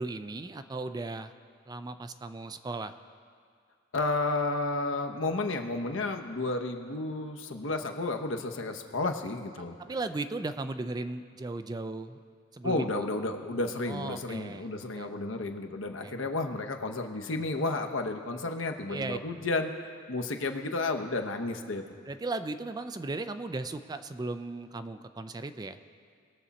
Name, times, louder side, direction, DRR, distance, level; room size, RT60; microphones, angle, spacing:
voice 1, 0.0-1.3 1.7-2.9 9.8-12.2 12.5-13.1 13.9-15.1 16.0-16.2 18.9-19.2 22.1-25.8, right 2 dB, 20° right, 10 dB, 0.4 m, -36 dB
voice 2, 3.9-9.8 12.6-21.8, left 2 dB, 80° left, 5 dB, 0.9 m, -32 dB
21.0 x 7.0 x 4.1 m, 2.2 s
head